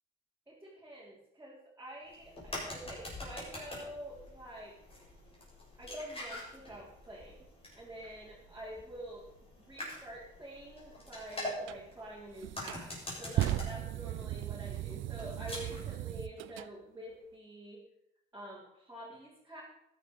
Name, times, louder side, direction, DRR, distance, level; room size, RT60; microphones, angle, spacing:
voice 1, 0.5-4.8 5.8-7.4 7.7-9.3 9.6-12.9 13.2-17.8 18.3-19.6, right 1 dB, 15° right, -7 dB, 4.7 m, -47 dB
sound 1, 2.1-15.9, left 1 dB, 30° left, 6.8 m, -45 dB
sound 2, 11.7-11.8 12.4-16.7, right 14 dB, 80° right, 0.5 m, -36 dB
13.5 x 11.0 x 5.1 m, 0.80 s
cardioid pair, 90°, 20 cm